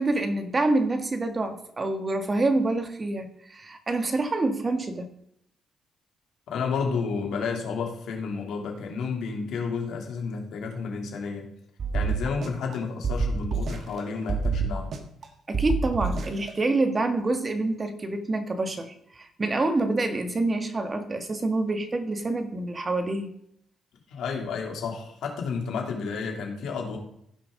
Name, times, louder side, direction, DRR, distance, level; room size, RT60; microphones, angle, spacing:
voice 1, 0.0-5.1 15.5-23.3, right 2 dB, 30° right, 7 dB, 1.5 m, -27 dB
voice 2, 6.5-11.5 11.9-14.9 24.1-27.0, left 5 dB, 75° left, 1 dB, 2.9 m, -31 dB
sound 1, 11.8-12.8 13.0-14.0 14.3-15.3 15.5-16.5, right 4 dB, 55° right, 1.5 m, -28 dB
16.0 x 5.8 x 3.8 m, 0.72 s
cardioid pair, 90°, 0 cm